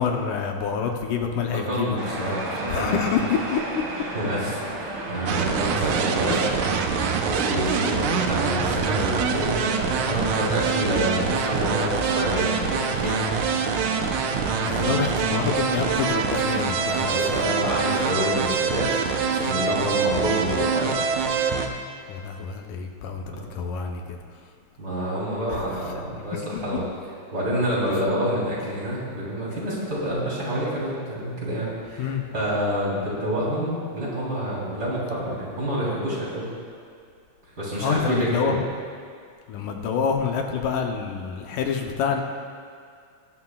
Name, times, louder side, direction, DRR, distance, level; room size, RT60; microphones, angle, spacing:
voice 1, 0.0-2.4 2.7-4.1 6.3-6.4 14.7-17.2 22.1-24.2 25.5-25.6 32.0-32.2 37.8-38.7 39.5-42.2, left 6 dB, 80° left, 2 dB, 2.3 m, -27 dB
voice 2, 1.5-3.0 4.1-6.9 7.2-13.3 14.6-15.1 16.9-21.0 23.3-23.4 24.8-26.8 27.3-36.5 37.6-38.6, equal, 30° right, -7 dB, 3.8 m, -28 dB
sound 1, 2.0-17.6, right 2 dB, 45° right, 2.3 m, -34 dB
sound 2, 5.3-21.7, right 6 dB, 80° right, 2.2 m, -25 dB
21.0 x 11.5 x 2.4 m, 2.2 s
omnidirectional pair, 3.6 m